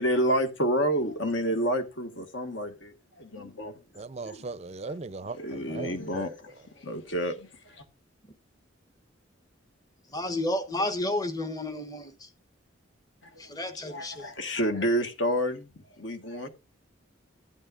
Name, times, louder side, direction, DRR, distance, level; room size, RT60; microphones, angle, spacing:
voice 1, 0.0-3.7 4.2-4.4 5.3-6.5 6.8-7.5 13.8-15.7 16.0-16.5, equal, 65° left, 1.5 m, -29 dB
voice 2, 3.9-6.2, right 3 dB, 35° right, 0.5 m, -38 dB
voice 3, 10.1-12.3 13.4-14.3, left 1 dB, 20° left, 1.0 m, -31 dB
13.0 x 8.8 x 2.5 m
head